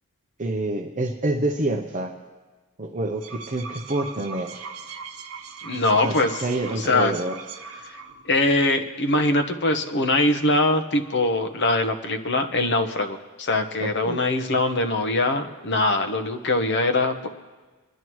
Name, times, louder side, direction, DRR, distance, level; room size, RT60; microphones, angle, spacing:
voice 1, 0.4-2.1 2.8-4.7 6.0-7.3 13.8-14.2, right 2 dB, 35° right, 3 dB, 0.7 m, -27 dB
sound 1, 3.0-8.4, right 5 dB, 70° right, 1.0 m, -39 dB
voice 2, 5.6-6.4 6.8-7.1 8.3-17.3, left 2 dB, 50° left, 6 dB, 0.9 m, -22 dB
25.0 x 11.0 x 3.1 m, 1.3 s
head